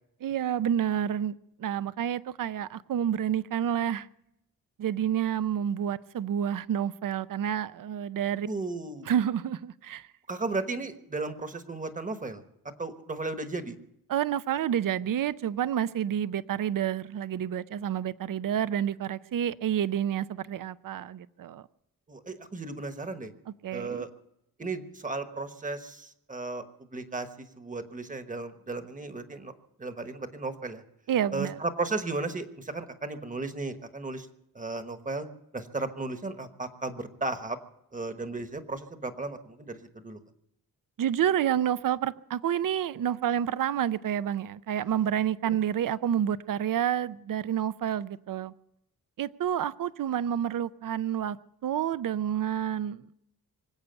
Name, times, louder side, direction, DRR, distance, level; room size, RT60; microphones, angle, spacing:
voice 1, 0.2-4.1 4.8-8.5 9.0-10.1 14.1-21.7 23.6-24.0 31.1-31.6 41.0-48.5 49.2-53.1, right 9 dB, 65° right, 0.6 m, -29 dB
voice 2, 8.5-9.1 10.3-12.4 12.8-13.7 22.1-23.3 23.7-24.1 24.6-26.6 26.9-29.5 29.8-30.8 31.3-34.3 34.5-35.3 35.5-37.6 37.9-40.2 45.5-45.6, right 3 dB, 20° right, 1.2 m, -35 dB
25.0 x 8.4 x 6.9 m
wide cardioid pair, 170°, 36 cm